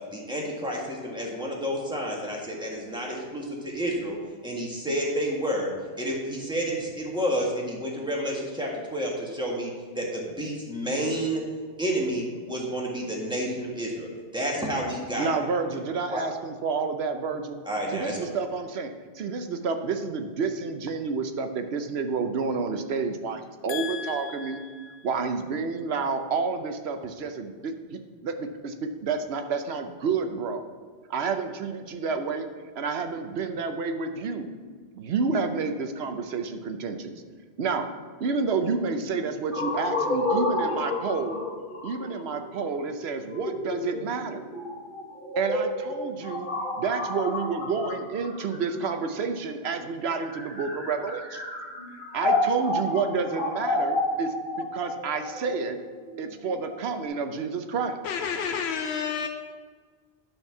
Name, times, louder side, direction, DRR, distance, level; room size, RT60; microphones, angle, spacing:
voice 1, 0.1-4.2 4.4-5.7 6.0-11.4 11.8-14.1 14.3-15.3 16.1-16.3 17.7-18.2, equal, 5° right, -3 dB, 1.7 m, -30 dB
voice 2, 15.2-17.6 17.9-24.6 25.0-30.6 31.1-32.5 32.8-34.5 35.0-37.1 37.6-37.9 38.2-41.4 41.8-44.4 45.4-46.5 46.8-51.4 52.1-55.8 56.2-58.2, right 5 dB, 75° right, 7 dB, 1.0 m, -29 dB
voice 3, 23.7-24.9 58.0-59.3, left 7 dB, 90° left, 5 dB, 0.9 m, -32 dB
sound 1, 39.5-49.4 50.1-57.1, left 2 dB, 55° left, 1.6 m, -30 dB
11.0 x 4.5 x 5.9 m, 1.5 s
omnidirectional pair, 1.1 m